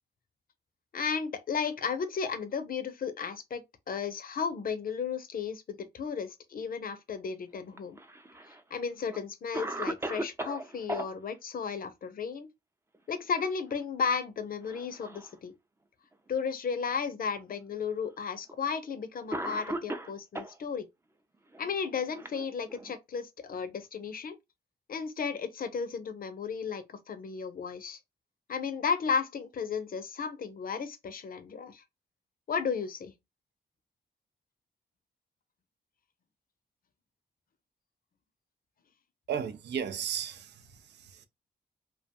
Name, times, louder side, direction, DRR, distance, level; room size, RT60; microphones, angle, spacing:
voice 1, 0.9-8.0 8.5-12.5 13.1-15.5 16.3-20.8 21.6-24.4 24.9-28.0 28.5-31.8 32.5-33.1, left 6 dB, 55° left, 0.5 m, -34 dB
Cough, 7.7-8.6 9.1-9.2 9.5-11.1 12.9-13.4 13.7-13.8 14.6-15.3 16.1-16.2 17.3-17.4 18.5-18.7 19.3-20.6 21.5-23.0, right 1 dB, 15° right, 0.4 m, -37 dB
voice 2, 39.3-41.3, right 8 dB, 80° right, 0.4 m, -35 dB
2.3 x 2.2 x 2.7 m
cardioid pair, 55°, 17 cm